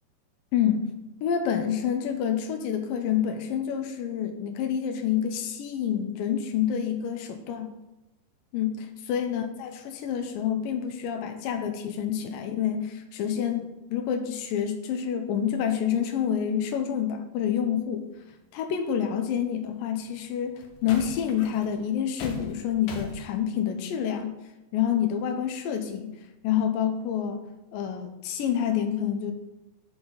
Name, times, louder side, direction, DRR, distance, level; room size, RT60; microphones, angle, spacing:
voice 1, 0.5-0.9 1.2-7.7 8.5-18.1 18.5-24.3 24.7-26.1 26.4-27.4 27.7-29.3, left 9 dB, 85° left, 5 dB, 2.0 m, -28 dB
sound 1, 18.3-18.4 19.9-20.1 20.6-23.3, left 4 dB, 70° left, 2.4 m, -39 dB
11.0 x 6.1 x 4.0 m, 0.99 s
omnidirectional pair, 5.0 m